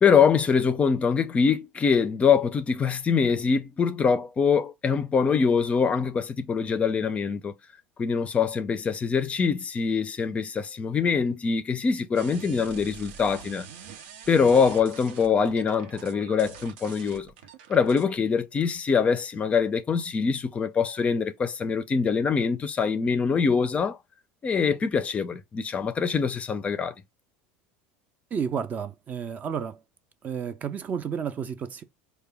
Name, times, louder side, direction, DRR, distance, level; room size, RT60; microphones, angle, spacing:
voice 1, 0.0-7.5 8.0-13.7 14.3-17.3 17.7-24.0 24.4-26.9, left 6 dB, 25° left, 0.5 m, -24 dB
sound 1, 12.1-18.2, right 7 dB, 85° right, 0.7 m, -45 dB
voice 2, 28.3-29.8 30.2-31.8, right 7 dB, 30° right, 0.5 m, -31 dB
4.6 x 2.2 x 3.4 m
supercardioid pair, 125°, 5 cm